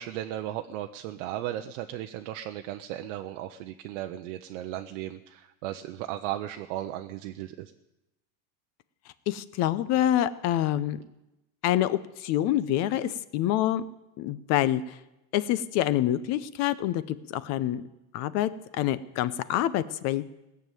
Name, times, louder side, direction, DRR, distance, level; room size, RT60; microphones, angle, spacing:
voice 1, 0.0-7.7, right 13 dB, 60° right, 6 dB, 0.8 m, -36 dB
voice 2, 9.3-11.0 11.6-13.8 14.2-15.0 15.3-17.8 18.1-20.2, left 12 dB, 40° left, 16 dB, 0.7 m, -26 dB
18.0 x 7.0 x 9.3 m, 0.95 s
supercardioid pair, 150°, 43 cm